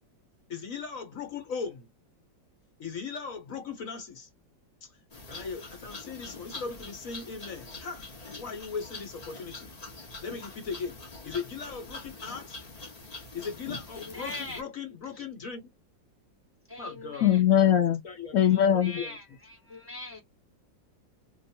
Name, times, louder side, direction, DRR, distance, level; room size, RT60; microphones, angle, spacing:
voice 1, 0.5-1.9 2.8-4.3 5.3-9.7 10.2-12.6 13.3-15.6 16.8-17.3 17.7-18.4 18.7-19.2, left 5 dB, 50° left, 1.3 m, -38 dB
sound 1, 5.1-14.6, left 3 dB, 35° left, 0.7 m, -44 dB
voice 2, 13.9-14.6 15.1-15.2 16.7-17.4 18.4-20.2, left 2 dB, 10° right, 1.1 m, -42 dB
voice 3, 17.2-18.0 18.3-18.9, left 10 dB, 85° left, 0.6 m, -21 dB
3.0 x 2.5 x 4.3 m
omnidirectional pair, 2.0 m